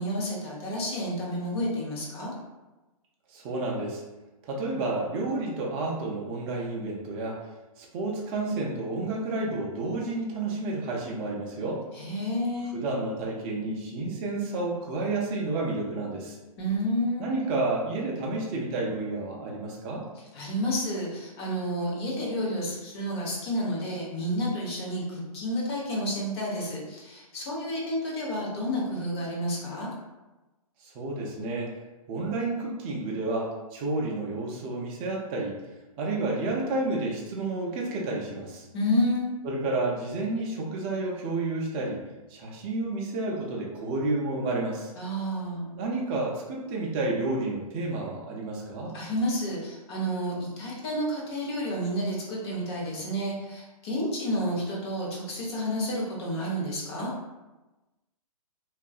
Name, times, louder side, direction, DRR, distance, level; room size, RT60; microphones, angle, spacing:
voice 1, 0.0-2.3 11.9-12.7 16.6-17.3 20.3-29.9 38.7-39.3 45.0-45.7 48.9-57.1, equal, 45° left, -3 dB, 0.8 m, -30 dB
voice 2, 3.3-4.0 4.5-7.4 7.8-11.8 12.7-16.4 17.2-20.0 30.8-31.7 32.1-35.6 36.0-38.6 39.4-42.0 42.3-44.9 45.7-48.9, right 2 dB, 20° right, -2 dB, 0.4 m, -30 dB
2.6 x 2.3 x 2.3 m, 1.1 s
hypercardioid pair, 150°, 19 cm